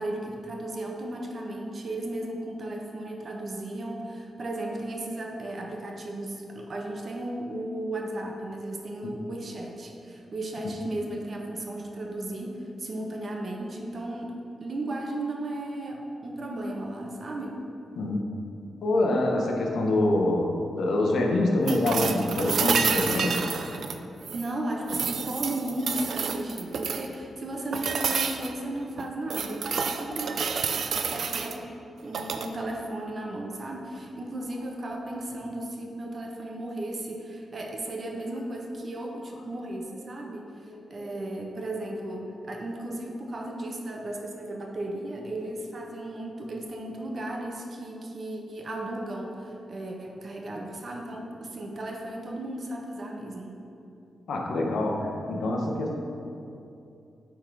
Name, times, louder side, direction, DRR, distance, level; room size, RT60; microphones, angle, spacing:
voice 1, 0.0-17.6 24.3-30.4 31.0-53.6, right 1 dB, 40° right, 1 dB, 0.8 m, -35 dB
voice 2, 18.8-23.5 40.6-40.8 54.3-56.0, left 1 dB, 75° left, 0 dB, 1.0 m, -25 dB
sound 1, 21.7-24.5 24.9-27.1 27.7-28.5 29.0-31.6 32.1-32.5 34.5-34.6, right 5 dB, 60° right, 0.4 m, -29 dB
8.9 x 3.7 x 4.7 m, 2.6 s
wide cardioid pair, 135°, 0 cm